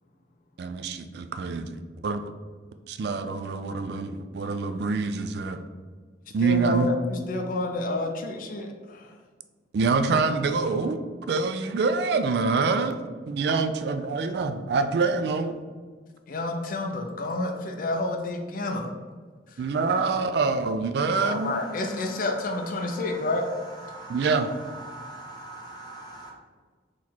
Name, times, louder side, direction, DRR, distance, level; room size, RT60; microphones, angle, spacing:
voice 1, 0.6-1.8 2.0-2.3 2.9-5.6 6.3-6.9 9.7-11.0 11.3-13.0 13.3-15.6 19.6-21.5 24.1-24.5, right 4 dB, 60° right, 0.3 m, -25 dB
voice 2, 6.4-9.1 16.3-18.9 21.2-23.4, left 2 dB, 45° left, 0.5 m, -29 dB
voice 3, 21.3-22.2 22.8-23.3 23.8-24.3 24.8-26.3, right 2 dB, 25° left, 0.9 m, -42 dB
4.0 x 3.1 x 4.3 m
head